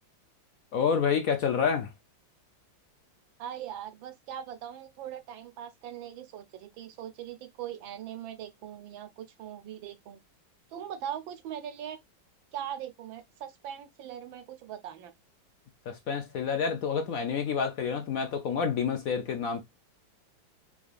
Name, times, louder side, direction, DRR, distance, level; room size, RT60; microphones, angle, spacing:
voice 1, 0.7-1.9 15.9-19.6, left 6 dB, 65° left, 0.9 m, -28 dB
voice 2, 3.4-10.2 10.7-12.0 12.5-15.1, right 10 dB, 85° right, 1.5 m, -40 dB
4.7 x 3.6 x 2.4 m
omnidirectional pair, 2.0 m